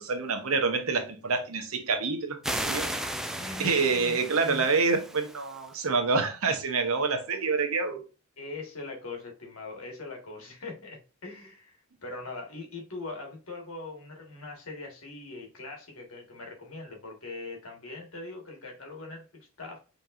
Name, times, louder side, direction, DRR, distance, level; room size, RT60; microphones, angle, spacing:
voice 1, 0.0-2.9 3.6-8.0, right 4 dB, 90° right, 0.9 m, -27 dB
sound 1, 2.4-5.7, right 1 dB, ahead, 0.3 m, -35 dB
voice 2, 3.3-4.7 8.4-19.8, left 3 dB, 90° left, 1.5 m, -41 dB
5.2 x 3.0 x 2.5 m
head